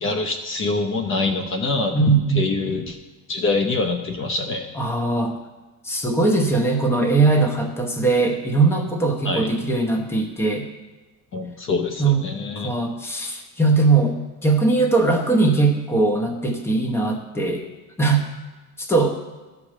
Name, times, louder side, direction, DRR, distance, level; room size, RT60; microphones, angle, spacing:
voice 1, 0.0-2.0 2.4-2.9 3.3-4.7 9.2-9.5 11.3-12.7, left 3 dB, 35° left, 6 dB, 0.8 m, -25 dB
voice 2, 1.9-2.5 4.7-5.4 5.8-10.7 12.0-12.2 12.6-17.6 18.0-18.3 18.8-19.1, right 3 dB, 5° left, 3 dB, 0.9 m, -20 dB
13.0 x 4.9 x 7.4 m, 1.2 s
cardioid pair, 160°, 35 cm